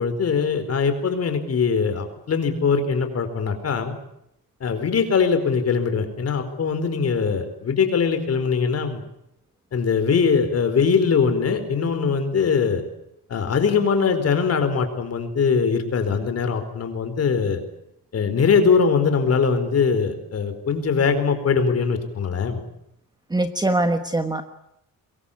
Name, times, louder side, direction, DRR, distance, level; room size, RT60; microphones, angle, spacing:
voice 1, 0.0-3.9 4.6-9.0 9.7-12.8 13.3-17.6 18.1-22.6, left 5 dB, 40° left, 8 dB, 4.4 m, -21 dB
voice 2, 23.3-24.4, right 2 dB, 10° right, 8 dB, 1.3 m, -22 dB
24.0 x 22.5 x 8.5 m, 0.80 s
cardioid pair, 175°, 36 cm